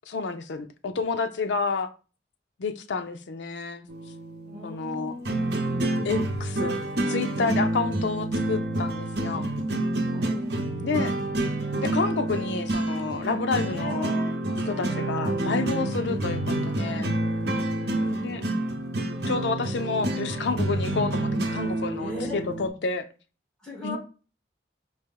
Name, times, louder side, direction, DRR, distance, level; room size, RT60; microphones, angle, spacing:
voice 1, 0.1-1.9 2.6-3.9 4.6-5.2 6.0-6.8 7.1-9.5 10.8-11.2 11.8-14.2 14.7-17.1 18.2-18.4 19.3-23.1 23.8-24.0, left 4 dB, 85° left, 0.5 m, -29 dB
sound 1, 3.9-22.7, right 1 dB, 70° right, 0.9 m, -28 dB
voice 2, 4.4-5.8 10.0-10.9 13.7-14.3 14.6-15.1 17.7-18.8 22.0-22.4 23.6-24.0, equal, 5° left, 1.9 m, -39 dB
4.3 x 2.8 x 3.6 m
head